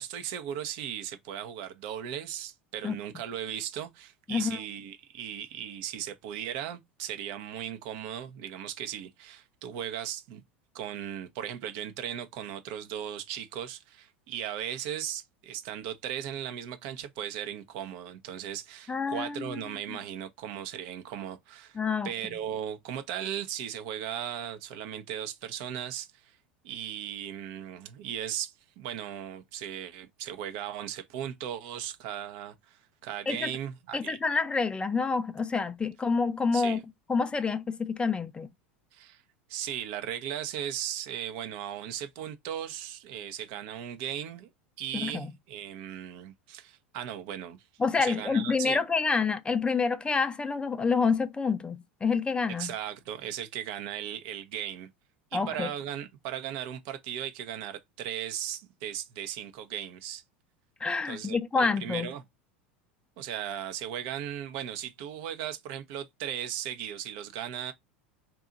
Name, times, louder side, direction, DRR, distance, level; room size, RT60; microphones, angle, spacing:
voice 1, 0.0-10.4 10.7-21.8 22.0-26.4 26.6-34.2 36.5-36.8 38.9-39.2 39.5-44.5 44.8-47.6 48.0-48.8 52.6-54.9 55.3-60.2 61.1-62.2 63.2-67.7, right 10 dB, 60° right, 0.6 m, -37 dB
voice 2, 18.9-19.6 21.8-22.1 33.3-33.5 33.9-36.8 37.1-38.5 44.9-45.3 47.8-52.7 55.3-55.7 60.8-62.1, left 4 dB, 15° left, 0.4 m, -28 dB
2.8 x 2.3 x 3.7 m
hypercardioid pair, 85°, 6 cm